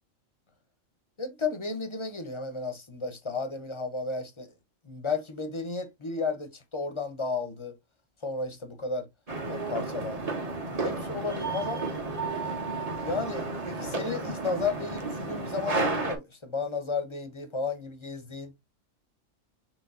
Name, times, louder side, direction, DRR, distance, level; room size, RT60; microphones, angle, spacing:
voice 1, 1.2-4.5 4.8-7.7 8.2-9.1 9.5-10.4 10.8-11.9 13.0-18.5, left 4 dB, 25° left, 0.9 m, -33 dB
sound 1, 9.3-16.2, right 3 dB, 30° right, 1.2 m, -32 dB
6.4 x 3.2 x 2.6 m
omnidirectional pair, 1.4 m